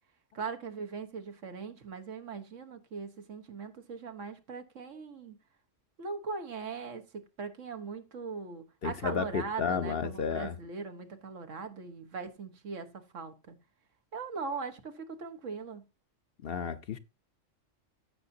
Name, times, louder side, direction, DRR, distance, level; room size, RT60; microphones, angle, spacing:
voice 1, 0.3-5.4 6.0-13.6 14.1-15.8, right 5 dB, 80° right, 1.6 m, -40 dB
voice 2, 8.8-10.6 16.4-17.0, left 6 dB, 55° left, 0.8 m, -32 dB
14.5 x 6.9 x 2.7 m
omnidirectional pair, 1.3 m